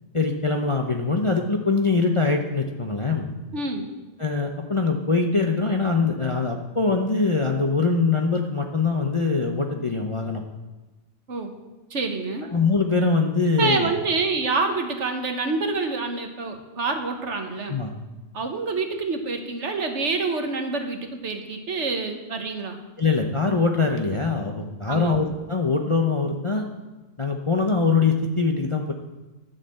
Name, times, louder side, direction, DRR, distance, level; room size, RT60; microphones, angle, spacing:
voice 1, 0.1-3.3 4.2-10.4 12.5-13.9 17.7-17.9 23.0-26.7 27.2-28.9, left 4 dB, 30° left, 2 dB, 0.7 m, -23 dB
voice 2, 3.5-3.9 11.3-11.5 11.9-12.5 13.6-17.8 18.3-22.8 24.9-25.1, right 3 dB, 60° right, 5 dB, 1.5 m, -27 dB
11.5 x 6.8 x 7.6 m, 1.2 s
omnidirectional pair, 1.4 m